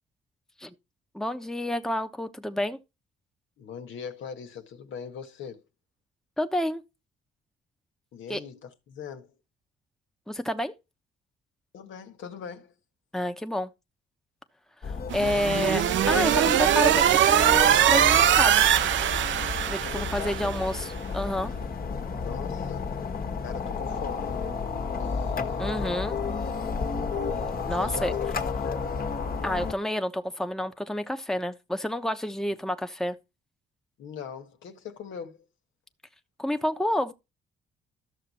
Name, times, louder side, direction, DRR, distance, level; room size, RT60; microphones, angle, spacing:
voice 1, 1.1-2.8 6.4-6.8 8.3-8.4 10.3-10.7 13.1-13.7 14.8-18.7 19.7-21.6 25.6-26.2 27.7-28.1 29.4-33.2 36.4-37.1, left 1 dB, ahead, 1.0 m, -29 dB
voice 2, 3.6-5.6 8.1-9.3 11.7-12.7 19.8-20.5 22.2-22.9 23.4-24.6 25.0-25.9 27.6-28.9 34.0-35.4, left 7 dB, 75° left, 1.6 m, -40 dB
sound 1, 14.8-29.7, left 5 dB, 45° left, 1.5 m, -32 dB
sound 2, 15.1-20.7, right 10 dB, 70° right, 0.8 m, -22 dB
13.0 x 6.6 x 4.3 m
cardioid pair, 90°, 20 cm